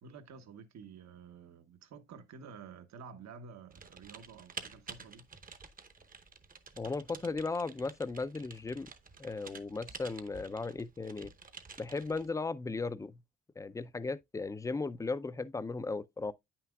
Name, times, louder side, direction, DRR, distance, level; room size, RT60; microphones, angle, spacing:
voice 1, 0.0-5.3, right 5 dB, 65° right, 1.1 m, -51 dB
Typing, 3.7-12.3, right 4 dB, 30° right, 0.8 m, -50 dB
voice 2, 6.8-8.9 9.2-11.3 11.8-13.2 13.6-16.3, left 3 dB, 10° left, 0.4 m, -36 dB
8.7 x 5.9 x 2.3 m
cardioid pair, 90°, 30 cm